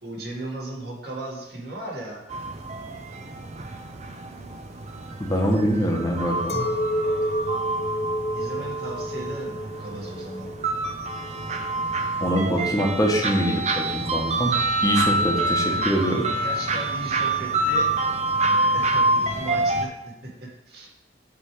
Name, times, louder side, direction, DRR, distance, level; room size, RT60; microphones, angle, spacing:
voice 1, 0.0-2.2 8.3-10.5 15.7-17.9 18.4-20.9, right 1 dB, 60° right, -4 dB, 1.9 m, -37 dB
sound 1, 2.3-19.9, right 2 dB, 35° right, 0.5 m, -27 dB
voice 2, 5.2-6.7 12.2-14.5 14.8-16.3, equal, 20° left, -1 dB, 1.0 m, -24 dB
Chink clink, 6.5-11.9, equal, 50° left, 0.5 m, -30 dB
8.2 x 3.3 x 4.8 m, 0.92 s
head